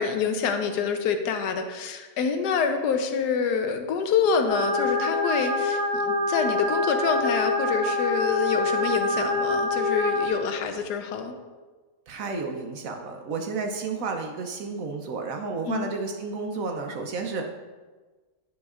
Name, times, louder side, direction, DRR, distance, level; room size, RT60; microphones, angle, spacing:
voice 1, 0.0-11.3 15.7-15.9, left 6 dB, 80° left, 6 dB, 1.2 m, -26 dB
sound 1, 4.5-10.3, left 2 dB, 55° left, 1.2 m, -25 dB
voice 2, 12.1-17.5, right 4 dB, 65° right, 3 dB, 0.9 m, -31 dB
9.3 x 5.1 x 2.4 m, 1.3 s
omnidirectional pair, 1.8 m